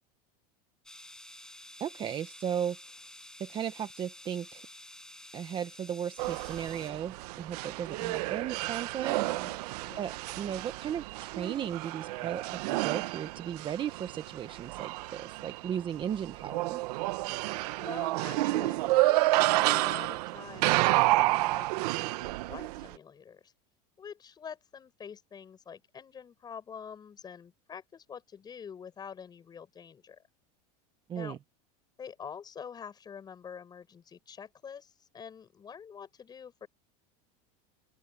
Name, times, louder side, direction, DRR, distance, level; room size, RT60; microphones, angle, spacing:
sound 1, 0.8-6.9, left 1 dB, 5° left, 5.7 m, -50 dB
voice 1, 1.8-2.8 3.4-4.7 5.3-9.6 9.9-17.2 31.1-31.4, right 9 dB, 25° right, 1.1 m, -36 dB
sound 2, 6.2-22.9, right 19 dB, 70° right, 1.0 m, -30 dB
voice 2, 9.1-10.1 17.8-23.5 24.0-30.2 31.1-31.4 32.0-36.7, left 7 dB, 20° left, 8.0 m, -46 dB
open air
supercardioid pair, 160°, 21 cm